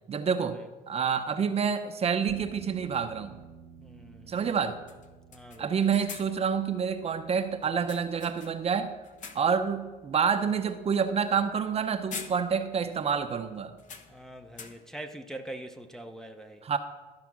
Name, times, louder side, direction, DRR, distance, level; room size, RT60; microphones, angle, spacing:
voice 1, 0.1-0.6 0.9-3.4 4.3-4.8 5.6-8.9 9.3-13.8 16.6-16.8, right 6 dB, 35° right, 0.7 m, -28 dB
sound 1, 1.3-1.4 3.4-3.6 3.9-4.0 4.4-4.6 4.9-6.5 7.6-8.7 9.0-9.7 10.1-10.3 11.6-11.8 12.1-12.8 13.1-13.2 13.8-15.0, left 6 dB, 50° left, 1.0 m, -46 dB
sound 2, 2.3-14.6, right 6 dB, 85° right, 0.9 m, -55 dB
voice 2, 3.8-4.4 5.3-5.7 14.1-16.6, right 1 dB, 5° left, 0.6 m, -43 dB
13.0 x 4.8 x 6.0 m
cardioid pair, 110°, 17 cm